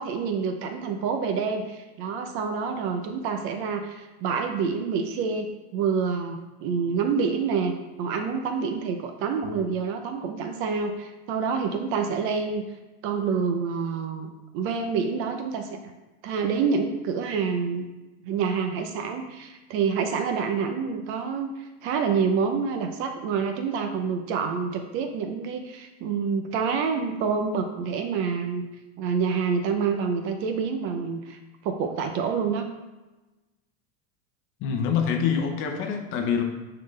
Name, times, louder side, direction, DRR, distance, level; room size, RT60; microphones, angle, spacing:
voice 1, 0.0-5.5 5.7-12.6 13.0-15.8 16.2-17.9 18.2-28.6 29.0-32.7, right 5 dB, 40° right, 6 dB, 0.7 m, -27 dB
voice 2, 34.6-36.4, left 7 dB, 40° left, 4 dB, 0.9 m, -25 dB
10.0 x 3.9 x 3.3 m, 1.1 s
supercardioid pair, 155°, 32 cm